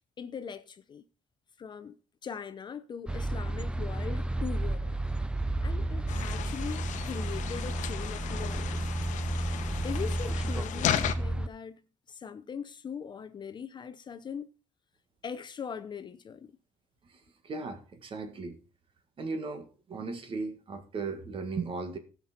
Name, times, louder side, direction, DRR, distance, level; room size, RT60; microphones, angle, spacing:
voice 1, 0.2-1.0 1.6-2.0 2.2-5.0 5.6-8.9 9.8-14.5 15.2-16.5, left 7 dB, 35° left, 0.6 m, -41 dB
sound 1, 3.1-11.5, right 1 dB, 5° right, 0.5 m, -32 dB
sound 2, 6.1-11.1, left 10 dB, 70° left, 0.9 m, -35 dB
voice 2, 17.1-18.6 19.2-22.0, right 4 dB, 45° right, 1.8 m, -37 dB
16.5 x 5.9 x 4.3 m
cardioid pair, 140°, 13 cm